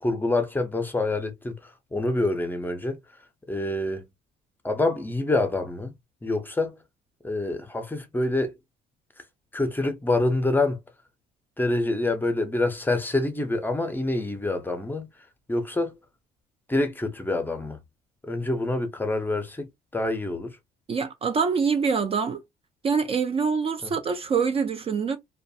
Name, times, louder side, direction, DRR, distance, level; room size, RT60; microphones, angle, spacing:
voice 1, 0.0-3.0 3.5-4.1 4.6-5.9 6.2-6.8 7.2-8.6 9.5-10.8 11.6-15.1 15.5-16.0 16.7-17.8 18.2-20.5 23.8-23.9, left 2 dB, 10° left, 0.6 m, -26 dB
voice 2, 20.9-22.4 22.8-25.2, right 5 dB, 35° right, 0.4 m, -25 dB
2.5 x 2.2 x 2.6 m
cardioid pair, 110°, 17 cm